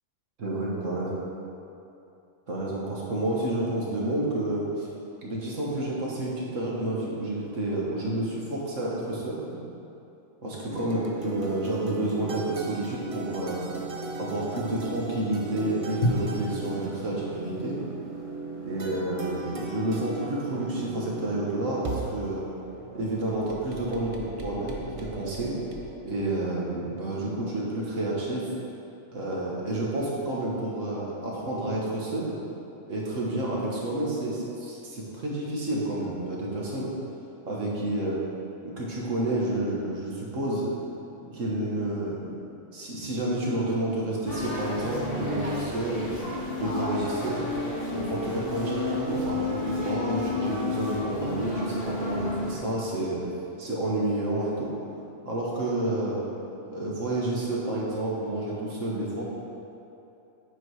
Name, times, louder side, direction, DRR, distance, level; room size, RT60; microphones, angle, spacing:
voice 1, 0.4-1.2 2.5-4.9 5.2-9.6 10.4-13.6 14.2-17.8 18.6-22.4 22.9-25.5 26.0-28.5 29.1-32.4 32.9-36.9 37.5-38.2 38.6-40.7 41.2-42.3 42.7-46.1 46.6-47.5 47.9-53.2 53.6-54.7 55.3-56.3 56.7-59.2, right 1 dB, 75° right, -5 dB, 1.8 m, -30 dB
sound 1, 10.7-26.0, right 3 dB, 35° right, 0.6 m, -38 dB
Drum, 16.0-19.0, left 1 dB, 70° left, 1.3 m, -33 dB
sound 2, 44.2-52.5, left 3 dB, 45° left, 2.0 m, -31 dB
8.2 x 5.0 x 4.8 m, 2.8 s
omnidirectional pair, 1.3 m